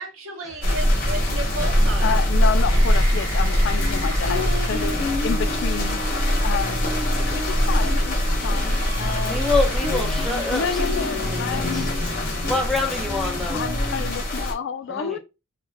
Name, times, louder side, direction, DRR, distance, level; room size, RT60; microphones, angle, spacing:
voice 1, 0.0-2.2 6.7-6.8, right 1 dB, 75° right, 0.8 m, -33 dB
sound 1, 0.6-14.5, equal, 40° left, 0.9 m, -23 dB
voice 2, 2.0-6.0 6.3-6.8 7.3-9.4 10.5-11.9 13.5-15.2, left 6 dB, 55° left, 0.3 m, -29 dB
sound 2, 2.3-6.7 8.2-13.7, right 1 dB, 40° right, 1.1 m, -37 dB
sound 3, 3.6-14.1, left 2 dB, 85° left, 0.7 m, -33 dB
voice 3, 9.2-11.9 12.4-13.6 14.9-15.2, left 2 dB, ahead, 0.6 m, -27 dB
2.3 x 2.1 x 3.3 m
head